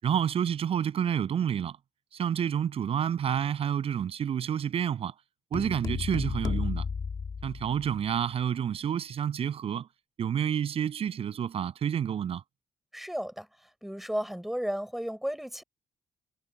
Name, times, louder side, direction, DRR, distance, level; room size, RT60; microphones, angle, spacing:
voice 1, 0.0-1.8 2.1-5.1 5.5-6.8 7.4-9.9 10.2-12.4, right 9 dB, 55° right, 7.2 m, -29 dB
sound 1, 5.5-8.1, left 5 dB, 35° left, 1.5 m, -33 dB
voice 2, 12.9-15.6, equal, ahead, 5.9 m, -34 dB
cardioid pair, 155°, 12 cm